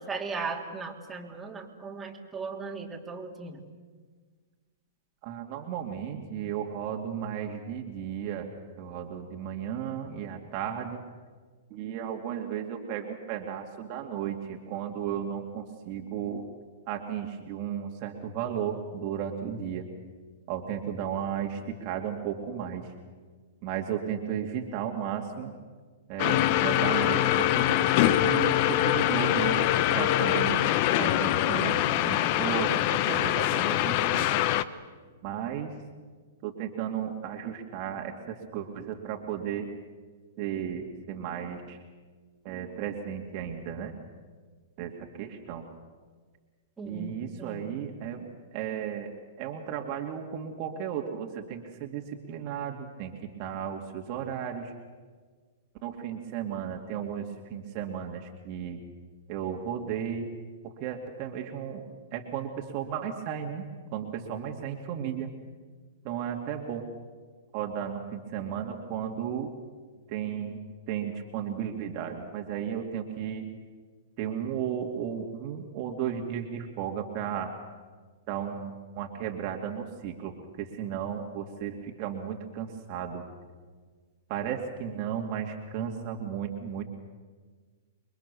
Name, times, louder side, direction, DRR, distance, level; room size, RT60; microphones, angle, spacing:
voice 1, 0.0-3.7 46.8-47.1 47.4-47.9, right 4 dB, 10° right, -1 dB, 3.3 m, -37 dB
voice 2, 5.2-8.5 8.8-11.0 11.7-16.5 16.9-19.9 20.5-22.8 23.6-25.5 26.1-30.6 31.0-34.3 35.2-35.7 36.4-38.1 38.5-39.7 40.4-41.8 42.4-43.9 44.8-45.7 46.8-48.3 48.5-49.1 49.4-53.1 53.4-54.7 55.8-58.8 59.3-60.3 60.6-63.7 63.9-65.3 66.0-66.9 67.5-69.5 70.1-70.6 70.9-73.4 74.2-77.5 78.3-83.2 84.3-86.8, right 8 dB, 45° right, 2 dB, 2.4 m, -34 dB
sound 1, 26.2-34.6, left 13 dB, 45° left, 1.0 m, -24 dB
28.0 x 22.5 x 7.0 m, 1.5 s
hypercardioid pair, 115°, 0 cm